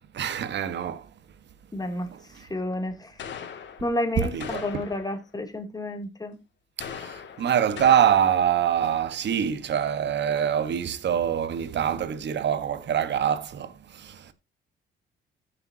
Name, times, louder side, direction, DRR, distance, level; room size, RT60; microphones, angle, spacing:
voice 1, 0.1-1.1 2.1-2.5 4.2-4.6 6.8-14.3, right 9 dB, 65° right, 1.4 m, -25 dB
voice 2, 1.7-2.1 2.3-3.3 3.8-6.4, left 1 dB, 20° left, 2.8 m, -31 dB
sound 1, 3.2-4.0 4.4-5.2 6.8-8.6, left 7 dB, 65° left, 2.4 m, -39 dB
15.0 x 6.8 x 2.8 m
cardioid pair, 90°, 20 cm